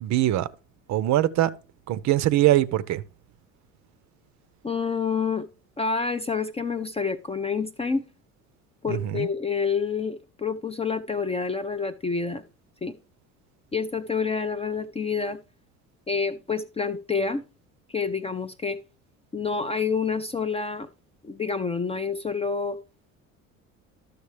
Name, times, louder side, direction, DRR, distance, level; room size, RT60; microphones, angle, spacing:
voice 1, 0.0-0.5 0.9-1.5 1.9-3.0 8.9-9.3, right 14 dB, 45° right, 0.5 m, -22 dB
voice 2, 4.6-5.5 5.8-8.1 8.8-12.4 12.8-13.0 13.7-15.4 16.1-17.4 17.9-18.8 19.3-20.9 21.2-22.8, left 5 dB, 15° left, 0.4 m, -28 dB
11.5 x 6.6 x 3.2 m
hypercardioid pair, 65°, 40 cm